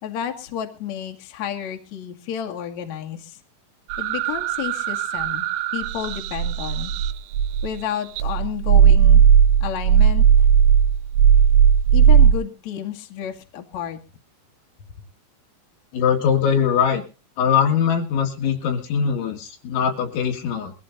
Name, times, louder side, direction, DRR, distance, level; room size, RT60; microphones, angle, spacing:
voice 1, 0.0-3.4 4.0-5.5 5.7-6.9 7.6-9.2 9.6-10.3 11.9-14.0, left 9 dB, 50° left, 2 dB, 2.6 m, -31 dB
sound 1, 3.9-7.8 8.2-12.3, right 8 dB, 80° right, 3.2 m, -16 dB
voice 2, 15.9-17.0 17.4-20.7, left 7 dB, 75° left, 3 dB, 4.3 m, -21 dB
23.0 x 15.0 x 2.7 m, 0.33 s
omnidirectional pair, 5.4 m